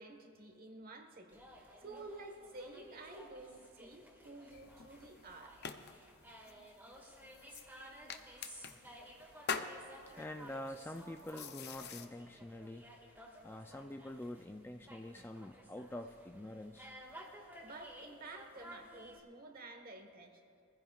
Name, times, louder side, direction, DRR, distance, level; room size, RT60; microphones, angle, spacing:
voice 1, 0.0-5.6 17.6-20.4, right 2 dB, 40° right, 4 dB, 1.4 m, -51 dB
sound 1, 1.3-19.2, equal, 10° right, 1.9 m, -55 dB
sound 2, 4.5-12.1, left 6 dB, 50° left, 0.6 m, -46 dB
voice 2, 10.2-12.9 13.4-16.9, left 1 dB, 10° left, 5 dB, 0.4 m, -46 dB
24.0 x 15.0 x 2.4 m, 2.6 s
head